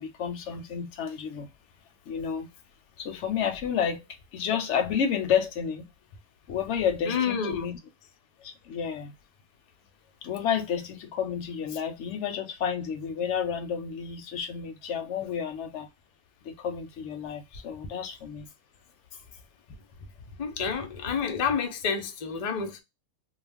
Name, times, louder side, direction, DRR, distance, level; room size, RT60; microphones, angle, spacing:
voice 1, 0.0-1.5 2.1-2.5 3.0-4.1 4.3-5.9 6.5-7.8 8.4-9.1 10.2-15.9 16.4-18.5, left 7 dB, 65° left, 0.8 m, -30 dB
voice 2, 7.1-7.7 20.4-22.8, left 6 dB, 85° left, 0.3 m, -29 dB
2.4 x 2.1 x 3.3 m
omnidirectional pair, 1.5 m